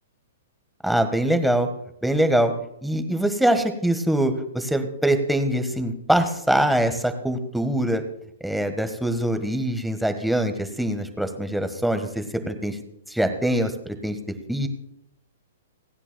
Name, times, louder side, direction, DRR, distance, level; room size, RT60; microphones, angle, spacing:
voice 1, 0.8-1.7 2.0-2.5 2.8-8.0 8.4-12.8 13.1-14.2 14.5-14.7, right 1 dB, ahead, 7 dB, 1.4 m, -23 dB
29.0 x 9.9 x 2.3 m, 0.74 s
hypercardioid pair, 115°, 0 cm